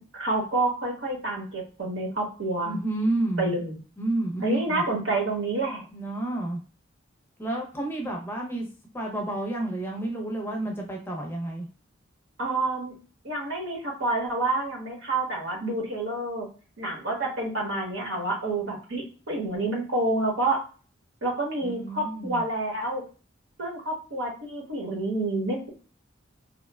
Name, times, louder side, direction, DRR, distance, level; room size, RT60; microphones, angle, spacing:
voice 1, 0.0-2.7 3.4-3.8 4.4-5.8 12.4-12.9 13.2-16.5 16.8-20.6 21.2-23.0 23.6-25.7, right 2 dB, 75° right, -1 dB, 1.0 m, -28 dB
voice 2, 2.6-3.5 4.0-4.8 5.9-6.6 7.4-8.7 8.9-11.7 21.6-22.4, right 1 dB, 10° left, 0 dB, 0.6 m, -30 dB
3.0 x 2.1 x 2.2 m, 0.37 s
head